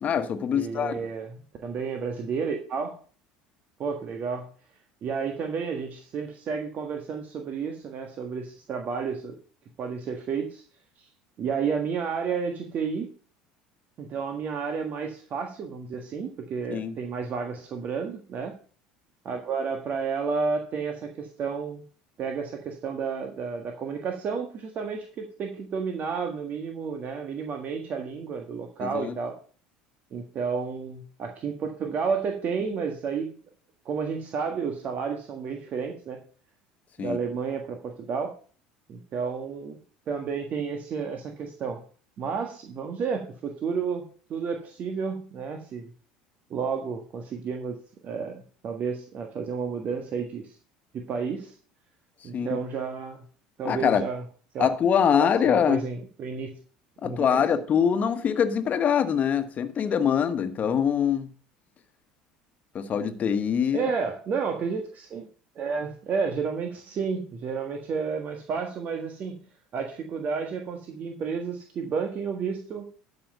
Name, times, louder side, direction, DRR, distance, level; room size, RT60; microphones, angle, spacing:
voice 1, 0.0-0.9 16.7-16.9 28.8-29.1 37.0-37.2 52.3-52.6 53.6-54.0 54.6-55.9 57.0-61.3 62.7-63.9, left 8 dB, 40° left, 1.4 m, -24 dB
voice 2, 0.5-3.0 3.8-4.5 5.0-9.4 9.8-10.6 11.0-11.1 11.4-13.1 14.0-18.6 19.2-21.8 22.2-29.4 30.1-33.3 33.8-36.2 37.0-38.4 38.9-39.8 40.1-41.8 42.2-45.9 46.5-47.8 48.0-50.6 50.9-51.5 52.2-53.3 53.6-54.2 54.5-54.7 55.2-56.6 57.0-57.4 63.7-65.3 65.5-69.4 69.7-72.9, right 5 dB, 45° right, 1.6 m, -31 dB
12.5 x 5.6 x 5.4 m
hypercardioid pair, 70°, 4 cm